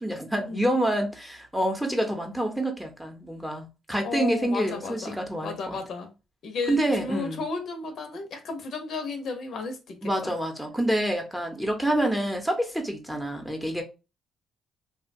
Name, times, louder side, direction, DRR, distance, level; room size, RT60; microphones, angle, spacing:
voice 1, 0.0-5.8 6.7-7.4 10.0-13.8, right 1 dB, 5° right, 0.7 m, -27 dB
voice 2, 4.0-6.1 6.4-10.3, left 4 dB, 65° left, 0.6 m, -34 dB
2.8 x 2.1 x 2.6 m
cardioid pair, 90°, 0 cm